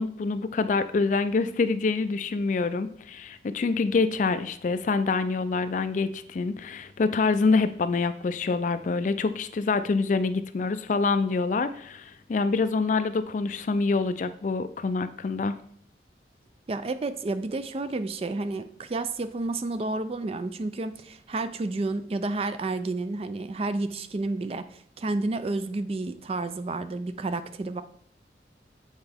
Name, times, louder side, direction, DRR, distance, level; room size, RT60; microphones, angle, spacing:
voice 1, 0.0-15.6, left 4 dB, 45° left, 12 dB, 0.3 m, -26 dB
voice 2, 16.7-27.8, right 2 dB, 35° right, 11 dB, 0.4 m, -30 dB
8.1 x 4.4 x 3.5 m, 0.63 s
head